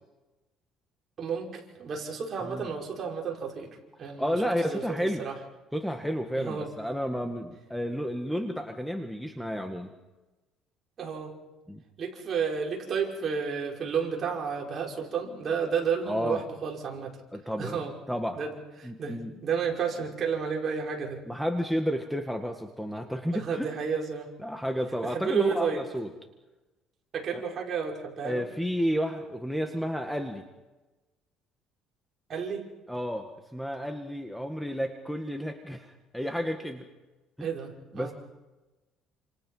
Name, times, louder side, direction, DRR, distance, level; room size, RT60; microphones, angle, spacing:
voice 1, 1.2-3.7 4.0-5.4 6.3-6.7 11.0-11.4 12.0-17.2 17.6-17.9 18.3-21.2 23.3-24.3 25.0-25.8 27.1-28.5 32.3-32.7 37.4-38.1, right 6 dB, 40° right, 0 dB, 5.6 m, -31 dB
voice 2, 4.2-5.2 5.7-9.9 11.7-11.8 16.1-16.4 17.3-17.8 18.1-18.4 18.8-19.3 21.3-23.7 24.4-26.1 27.3-27.4 28.2-30.4 32.9-36.8 37.4-37.5 37.9-38.1, equal, ahead, 4 dB, 1.9 m, -31 dB
29.5 x 27.0 x 5.7 m, 1.1 s
cardioid pair, 130°, 0 cm